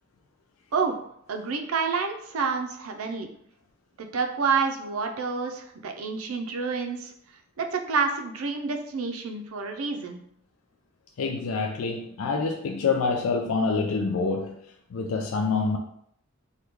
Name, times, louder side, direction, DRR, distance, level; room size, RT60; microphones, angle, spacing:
voice 1, 1.3-3.3 4.0-7.1 7.6-10.2, right 5 dB, 80° right, 4 dB, 0.5 m, -28 dB
voice 2, 11.2-14.6 14.9-15.8, left 4 dB, 70° left, 2 dB, 0.3 m, -26 dB
3.0 x 2.2 x 3.5 m, 0.70 s
head